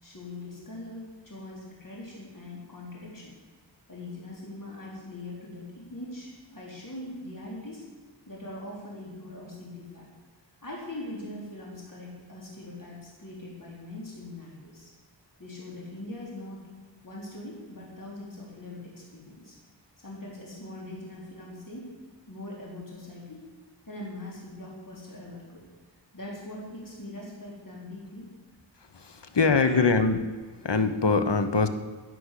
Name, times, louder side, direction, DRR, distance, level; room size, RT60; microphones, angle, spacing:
voice 1, 0.0-3.3 3.9-7.8 8.3-10.1 10.6-14.9 15.4-16.7 17.0-19.6 20.0-21.9 22.3-23.4 23.9-25.6 26.1-28.3 29.1-29.9, left 1 dB, 45° left, -4 dB, 3.8 m, -41 dB
voice 2, 28.9-30.2 30.6-31.7, left 4 dB, 70° left, 9 dB, 1.2 m, -23 dB
11.0 x 9.8 x 8.3 m, 1.4 s
wide cardioid pair, 60°, 43 cm